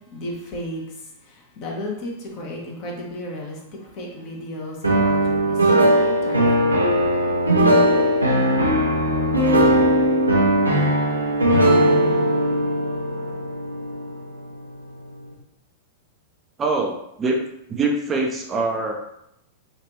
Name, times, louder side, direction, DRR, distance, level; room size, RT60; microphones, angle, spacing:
voice 1, 0.1-0.8 1.3-6.8, left 1 dB, 40° left, -1 dB, 0.9 m, -33 dB
sound 1, 4.8-14.8, right 1 dB, 90° right, 0.6 m, -19 dB
voice 2, 16.6-17.4 17.7-18.9, right 3 dB, 20° right, 1 dB, 0.5 m, -23 dB
3.1 x 2.5 x 3.0 m, 0.79 s
figure-of-eight pair, 95°, 0 cm